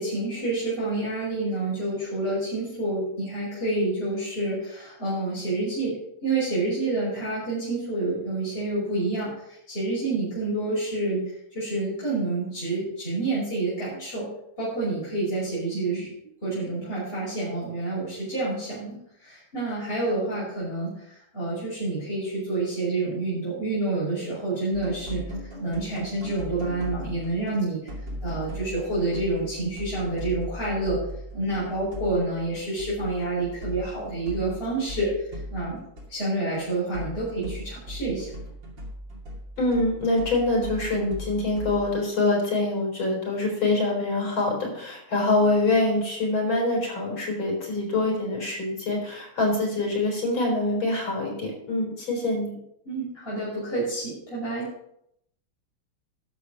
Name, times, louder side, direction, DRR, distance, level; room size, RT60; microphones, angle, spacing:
voice 1, 0.0-14.3 14.6-16.1 16.4-27.9 28.2-31.0 31.3-35.8 36.1-38.3 52.8-54.7, right 2 dB, 25° left, -10 dB, 6.1 m, -28 dB
sound 1, 24.7-27.6 27.9-36.1 36.4-42.0, equal, 60° right, 3.4 m, -38 dB
voice 2, 39.6-52.6, left 2 dB, 70° left, -1 dB, 5.1 m, -25 dB
11.5 x 7.2 x 6.2 m, 0.75 s
omnidirectional pair, 2.3 m